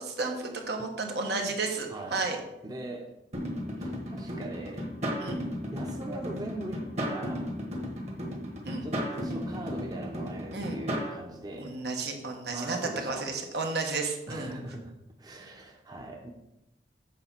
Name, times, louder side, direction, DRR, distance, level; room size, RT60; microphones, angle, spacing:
voice 1, 0.0-2.4 5.2-5.5 8.7-8.9 10.5-10.8 11.6-14.5, right 3 dB, 70° right, 2 dB, 1.2 m, -32 dB
voice 2, 1.3-1.6 1.9-2.3 2.6-3.1 3.8-4.9 5.7-7.5 8.8-11.8 12.5-13.3 14.3-16.3, right 1 dB, 20° right, 1 dB, 0.8 m, -40 dB
sound 1, 3.3-11.1, equal, 40° right, 1.5 m, -34 dB
8.3 x 4.0 x 6.0 m, 0.90 s
head